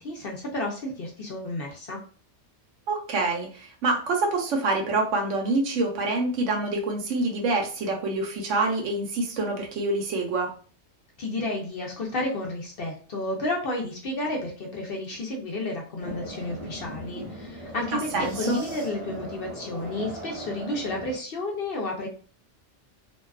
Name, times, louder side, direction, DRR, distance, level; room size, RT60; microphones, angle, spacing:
voice 1, 0.0-2.0 11.2-22.1, left 2 dB, 60° left, 0 dB, 0.7 m, -31 dB
voice 2, 2.9-10.5 18.1-18.6, right 2 dB, 80° right, 1 dB, 1.0 m, -26 dB
sound 1, 16.0-21.2, right 1 dB, 20° left, 0.7 m, -38 dB
2.6 x 2.3 x 2.3 m, 0.41 s
omnidirectional pair, 1.3 m